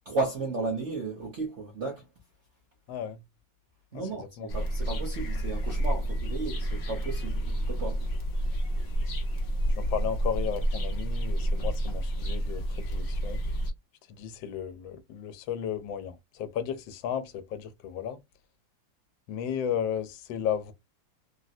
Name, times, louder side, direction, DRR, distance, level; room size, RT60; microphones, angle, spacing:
voice 1, 0.1-2.0 3.9-8.0, right 3 dB, 55° right, 0.8 m, -34 dB
voice 2, 2.9-3.2 3.9-4.0 4.4-4.5 9.7-13.4 14.1-18.2 19.3-20.7, left 8 dB, 90° left, 1.3 m, -34 dB
sound 1, 4.5-13.7, right 1 dB, 60° left, 0.6 m, -29 dB
3.7 x 2.1 x 2.6 m
omnidirectional pair, 2.0 m